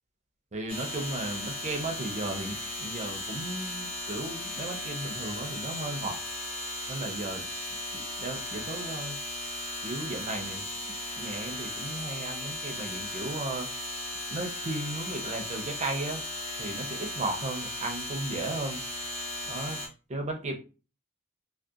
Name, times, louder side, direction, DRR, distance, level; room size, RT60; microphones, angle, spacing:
voice 1, 0.5-6.2 6.9-7.4 7.9-9.2 9.8-13.7 14.3-16.2 16.6-18.8 19.5-19.8 20.1-20.5, right 2 dB, 30° right, 4 dB, 0.5 m, -35 dB
sound 1, 0.7-19.9, left 1 dB, 25° left, 0.7 m, -36 dB
2.6 x 2.1 x 2.3 m, 0.33 s
head